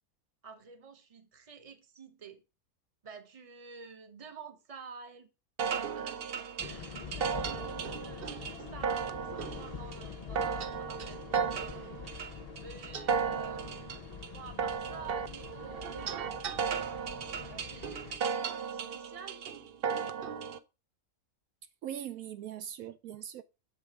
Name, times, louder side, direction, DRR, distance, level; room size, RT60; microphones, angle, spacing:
voice 1, 0.4-2.4 3.0-5.3 5.8-11.2 11.7-12.1 12.6-14.0 14.3-16.5 17.5-19.4, right 6 dB, 25° right, 1.0 m, -50 dB
sound 1, 5.6-20.6, right 6 dB, 55° right, 0.7 m, -35 dB
sound 2, 6.6-18.2, left 7 dB, 65° left, 0.3 m, -45 dB
voice 2, 21.8-23.4, right 10 dB, 75° right, 1.0 m, -40 dB
7.4 x 5.1 x 3.5 m
omnidirectional pair, 1.6 m